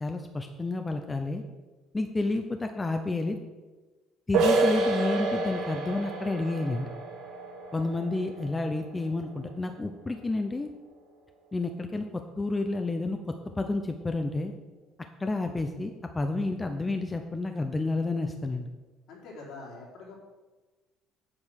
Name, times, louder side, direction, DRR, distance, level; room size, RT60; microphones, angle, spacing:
voice 1, 0.0-1.4 1.9-3.4 4.3-6.9 7.7-10.7 11.5-13.2 13.6-14.5 15.2-18.7, left 2 dB, 15° left, 6 dB, 0.6 m, -30 dB
sound 1, 4.3-9.8, right 3 dB, 65° right, 2.6 m, -29 dB
voice 2, 19.1-20.2, left 3 dB, 65° left, -3 dB, 4.0 m, -44 dB
8.7 x 7.9 x 6.4 m, 1.2 s
cardioid pair, 150°, 0 cm